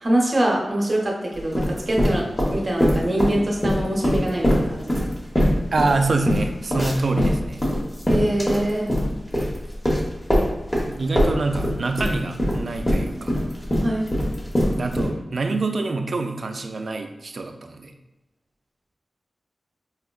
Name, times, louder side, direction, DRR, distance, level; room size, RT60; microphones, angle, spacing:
voice 1, 0.0-5.0 8.1-8.9 13.8-14.1, right 1 dB, 45° right, -2 dB, 0.8 m, -24 dB
sound 1, 1.4-3.3 3.6-10.9 11.2-15.1, equal, 25° left, 0.9 m, -21 dB
voice 2, 5.7-7.6 10.9-13.4 14.8-17.9, right 3 dB, 65° right, 6 dB, 0.3 m, -26 dB
4.9 x 2.1 x 2.2 m, 1.0 s
wide cardioid pair, 70°, 0 cm